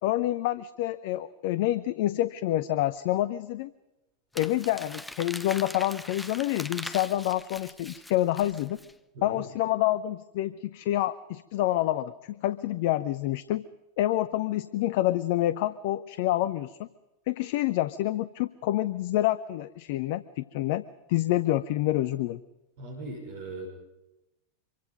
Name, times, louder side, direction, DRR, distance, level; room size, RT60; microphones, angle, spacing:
voice 1, 0.0-3.7 4.3-8.8 9.2-13.6 14.0-16.8 17.3-20.8 21.1-22.4, left 14 dB, 50° left, 16 dB, 0.7 m, -27 dB
Crumpling crinkling, 4.3-8.9, left 1 dB, 5° left, 0.9 m, -41 dB
voice 2, 22.8-23.7, right 2 dB, 50° right, 3 dB, 5.7 m, -39 dB
26.0 x 24.0 x 5.3 m, 0.94 s
figure-of-eight pair, 90°, 0 cm